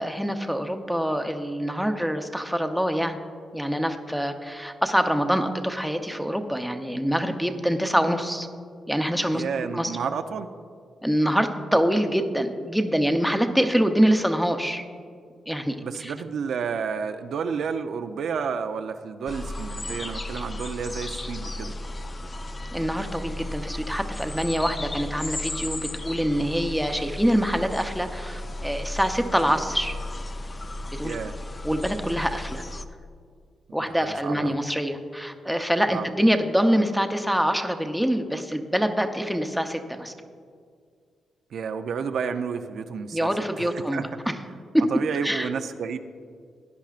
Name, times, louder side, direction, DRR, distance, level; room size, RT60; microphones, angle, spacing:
voice 1, 0.0-3.2 3.5-8.5 8.9-9.4 9.7-9.9 11.0-14.8 15.5-16.1 22.7-29.9 30.9-31.2 31.6-32.6 33.7-40.1 43.1-44.1 44.7-44.8 45.2-45.5, equal, ahead, 5 dB, 0.7 m, -25 dB
voice 2, 9.3-10.5 15.8-21.7 31.0-31.4 33.9-34.6 35.9-36.1 41.5-43.3 43.6-44.1 44.9-46.0, right 6 dB, 75° right, 7 dB, 0.5 m, -31 dB
sound 1, 19.3-32.8, left 1 dB, 25° left, 0.4 m, -34 dB
17.0 x 10.5 x 2.5 m, 2.1 s
cardioid pair, 110°, 0 cm